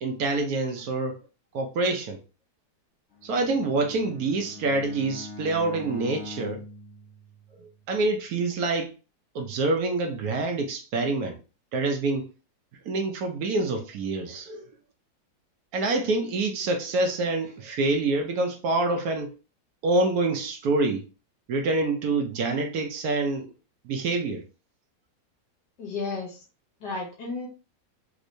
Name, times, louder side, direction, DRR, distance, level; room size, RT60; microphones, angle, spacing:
voice 1, 0.0-1.2 1.5-2.2 3.2-6.6 7.6-8.9 9.3-11.4 11.7-12.3 12.8-14.7 15.7-19.4 19.8-21.1 21.5-23.5 23.8-24.4, right 3 dB, 65° right, 1.0 m, -26 dB
Bowed string instrument, 3.1-7.8, left 2 dB, 40° left, 1.3 m, -42 dB
voice 2, 25.8-26.4 26.8-27.5, left 3 dB, 70° left, 1.5 m, -33 dB
3.6 x 3.1 x 2.5 m
omnidirectional pair, 2.0 m